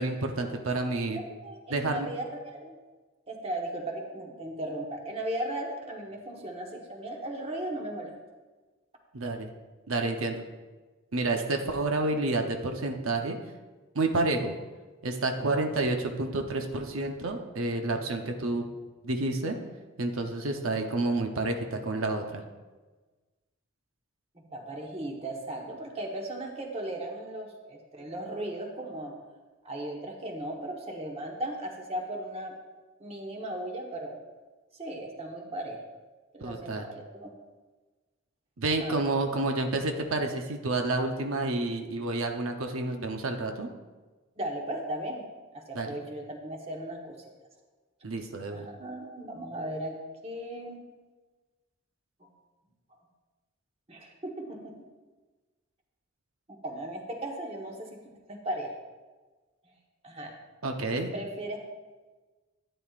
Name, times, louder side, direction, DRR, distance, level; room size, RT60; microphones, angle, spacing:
voice 1, 0.0-1.2 1.7-2.1 9.1-9.5 9.9-10.4 11.1-13.4 13.9-14.6 15.0-18.7 19.0-19.5 20.0-22.4 36.4-36.9 38.6-43.7 45.7-46.0 48.0-48.7 60.6-61.1, right 2 dB, 90° right, 4 dB, 0.8 m, -29 dB
voice 2, 1.1-2.7 3.3-8.1 24.5-29.1 29.6-32.5 33.0-34.2 34.8-35.8 36.3-37.3 38.6-39.0 44.4-45.3 45.5-47.2 48.5-50.0 50.2-50.8 52.2-52.3 53.9-54.7 56.5-58.7 60.0-60.3 61.0-61.6, right 1 dB, 30° right, 0 dB, 1.2 m, -37 dB
12.0 x 9.2 x 2.5 m, 1.3 s
head